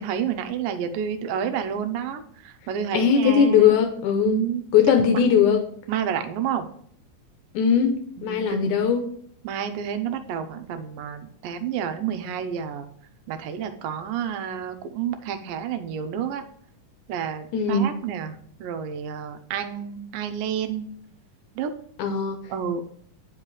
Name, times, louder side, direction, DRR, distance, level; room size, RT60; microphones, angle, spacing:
voice 1, 0.0-3.8 4.2-4.6 5.1-5.2 5.9-6.7 8.2-8.7 9.4-12.9 13.3-16.4 17.1-20.9 21.6-21.7 22.5-22.8, right 8 dB, 85° right, 7 dB, 2.3 m, -29 dB
voice 2, 2.9-4.4 4.7-5.6 7.5-9.0 17.5-17.9 22.0-22.4, left 7 dB, 75° left, 6 dB, 2.0 m, -19 dB
9.0 x 5.3 x 3.2 m, 0.63 s
omnidirectional pair, 4.0 m